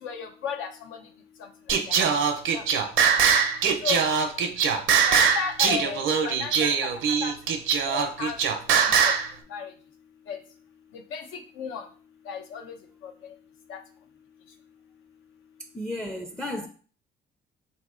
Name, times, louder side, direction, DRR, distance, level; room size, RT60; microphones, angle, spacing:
voice 1, 0.0-1.0 1.9-2.1 2.5-2.6 3.8-4.0 5.1-6.7 7.2-7.3 7.9-8.4 9.0-9.1 9.5-9.7 10.3-10.4 10.9-11.9 12.3-12.7 13.0-13.3 13.7-13.8, left 6 dB, 85° left, 0.8 m, -34 dB
Singing, 1.7-9.3, right 6 dB, 75° right, 0.6 m, -22 dB
voice 2, 15.7-16.7, left 1 dB, 5° left, 0.4 m, -33 dB
4.1 x 2.8 x 3.7 m
cardioid pair, 90°, 20 cm